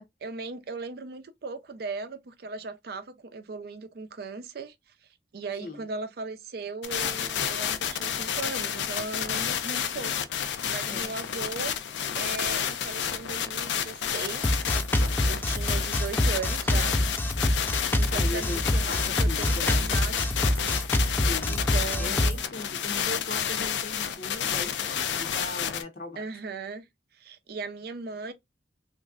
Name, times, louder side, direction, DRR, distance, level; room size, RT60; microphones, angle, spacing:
voice 1, 0.2-4.7 5.3-11.8 12.2-14.6 15.3-17.0 18.0-22.4 26.2-26.9 27.1-28.3, right 4 dB, 60° right, 0.5 m, -38 dB
sound 1, 6.8-25.8, left 8 dB, 85° left, 0.5 m, -30 dB
Drum kit, 14.4-22.4, left 1 dB, 10° left, 0.3 m, -26 dB
voice 2, 18.1-19.9 21.2-21.5 22.0-26.3, left 2 dB, 50° left, 0.7 m, -39 dB
3.1 x 2.5 x 2.4 m
head